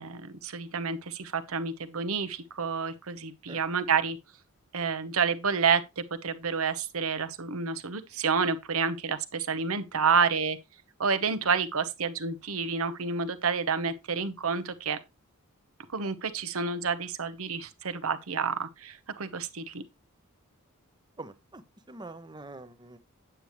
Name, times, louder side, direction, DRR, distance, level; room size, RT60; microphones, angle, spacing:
voice 1, 0.0-4.2 4.7-10.6 11.0-15.0 15.9-19.8, right 5 dB, 70° right, 0.9 m, -29 dB
voice 2, 21.2-21.6 21.9-23.0, right 2 dB, 20° right, 0.8 m, -44 dB
8.9 x 8.3 x 3.1 m
head